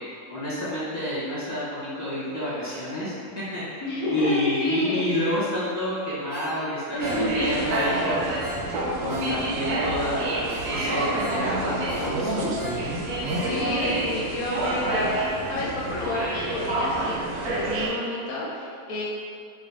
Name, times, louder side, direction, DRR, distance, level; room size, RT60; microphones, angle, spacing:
voice 1, 0.3-3.8 4.1-8.3 9.0-12.5 13.4-13.6, left 1 dB, 10° right, -13 dB, 1.3 m, -29 dB
voice 2, 3.8-5.1 6.9-7.7 13.4-17.2 17.4-19.0, left 1 dB, 75° left, -6 dB, 1.0 m, -29 dB
Ringtone, 6.3-9.8 10.1-10.2 10.5-13.9 14.3-14.4, left 1 dB, 45° right, 1.5 m, -40 dB
sound 1, 7.0-17.9, right 2 dB, 80° right, 1.1 m, -28 dB
3.3 x 2.7 x 3.5 m, 2.3 s
omnidirectional pair, 1.6 m